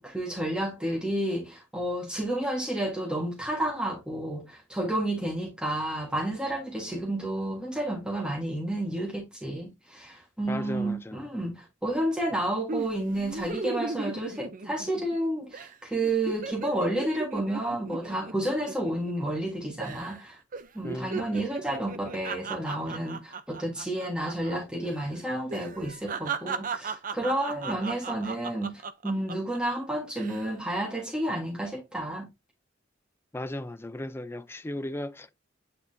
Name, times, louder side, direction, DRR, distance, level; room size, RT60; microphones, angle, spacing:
voice 1, 0.0-20.4 20.7-32.3, right 1 dB, 5° right, 1.5 m, -31 dB
voice 2, 10.5-11.3 20.8-21.1 33.3-35.3, left 1 dB, 10° left, 0.5 m, -36 dB
sound 1, 12.7-15.2 15.5-15.7 16.0-19.5 19.8-20.2 20.5-24.6 24.8-25.0 25.5-29.6 30.1-30.5, right 4 dB, 45° right, 0.6 m, -36 dB
8.7 x 4.2 x 2.7 m
head